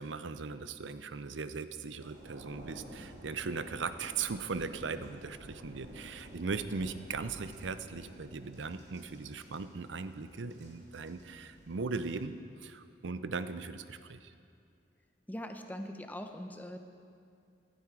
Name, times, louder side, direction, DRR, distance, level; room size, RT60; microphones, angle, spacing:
voice 1, 0.0-14.3, right 4 dB, 85° right, 12 dB, 0.6 m, -39 dB
sound 1, 2.0-12.2, right 1 dB, 70° right, 2.7 m, -52 dB
voice 2, 15.3-16.8, left 1 dB, 10° left, 6 dB, 0.7 m, -41 dB
15.5 x 11.5 x 4.7 m, 2.4 s
head